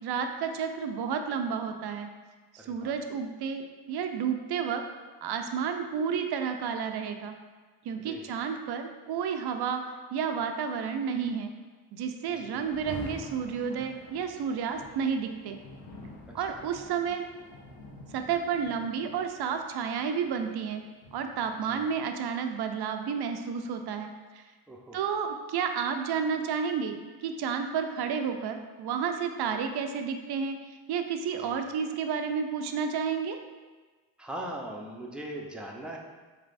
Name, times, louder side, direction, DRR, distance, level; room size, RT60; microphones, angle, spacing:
voice 1, 0.0-2.1 2.5-4.8 5.2-7.3 7.8-9.8 10.1-11.5 11.9-15.6 16.3-17.2 18.1-20.8 21.1-24.4 24.9-30.6 30.9-33.4, right 6 dB, 55° right, 6 dB, 0.5 m, -31 dB
voice 2, 2.6-2.9 8.0-8.3 12.4-12.7 16.4-16.6 21.6-21.9 24.7-25.0 31.4-31.6 34.2-36.0, right 1 dB, ahead, -1 dB, 0.5 m, -40 dB
Rain, 12.6-21.7, left 1 dB, 50° left, 1.0 m, -47 dB
3.8 x 3.3 x 2.5 m, 1.3 s
hypercardioid pair, 45°, 50 cm